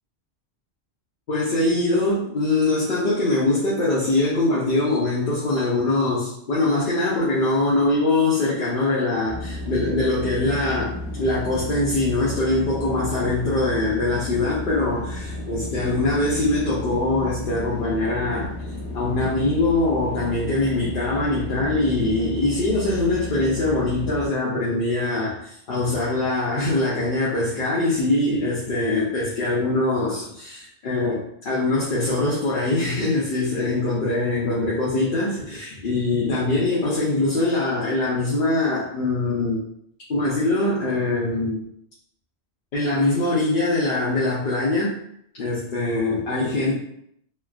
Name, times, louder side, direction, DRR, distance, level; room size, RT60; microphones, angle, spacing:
voice 1, 1.3-18.5 18.9-39.6 40.1-41.6 42.7-45.0 45.4-46.7, left 2 dB, 60° left, -7 dB, 0.8 m, -23 dB
sound 1, 9.3-24.3, left 1 dB, 80° left, 1.1 m, -33 dB
3.2 x 2.3 x 2.3 m, 0.71 s
omnidirectional pair, 1.1 m